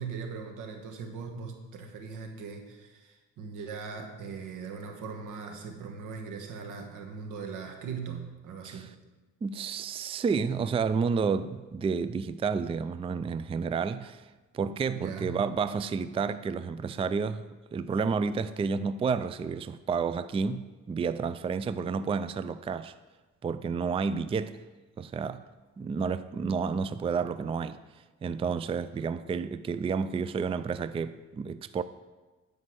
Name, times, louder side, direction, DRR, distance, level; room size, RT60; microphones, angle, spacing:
voice 1, 0.0-8.9 14.9-15.4, right 5 dB, 90° right, 1.5 m, -40 dB
voice 2, 9.4-14.3 14.5-17.4 17.7-22.9 23.4-24.6 25.0-25.4 25.8-27.8 28.2-31.8, right 5 dB, 20° right, 0.3 m, -30 dB
9.8 x 5.2 x 6.3 m
cardioid pair, 90°, 30 cm